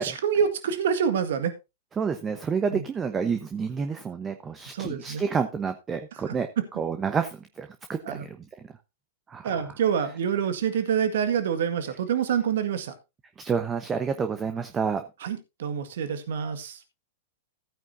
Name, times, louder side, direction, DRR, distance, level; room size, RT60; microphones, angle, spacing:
voice 1, 0.0-1.5 2.7-2.8 4.7-5.2 6.3-6.7 8.1-8.3 9.4-12.9 15.2-16.8, right 8 dB, 65° right, 10 dB, 1.9 m, -27 dB
voice 2, 2.0-6.5 6.8-8.7 9.3-9.6 13.4-15.0, right 6 dB, 20° right, 8 dB, 1.0 m, -29 dB
15.5 x 9.1 x 2.7 m, 0.25 s
hypercardioid pair, 105°, 0 cm